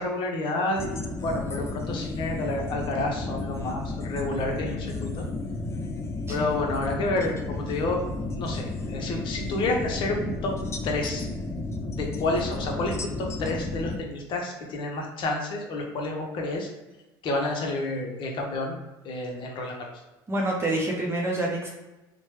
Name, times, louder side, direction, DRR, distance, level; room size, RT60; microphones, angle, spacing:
voice 1, 0.0-5.2 6.3-8.0 8.3-10.5 10.8-11.3 11.9-16.7 17.2-18.8 19.0-19.8, left 2 dB, 50° left, 1 dB, 0.8 m, -29 dB
sound 1, 0.8-14.0, left 2 dB, 25° left, 0.4 m, -33 dB
voice 2, 20.3-21.7, right 1 dB, 25° right, -1 dB, 0.6 m, -27 dB
2.9 x 2.1 x 3.2 m, 1.1 s
hypercardioid pair, 80°, 11 cm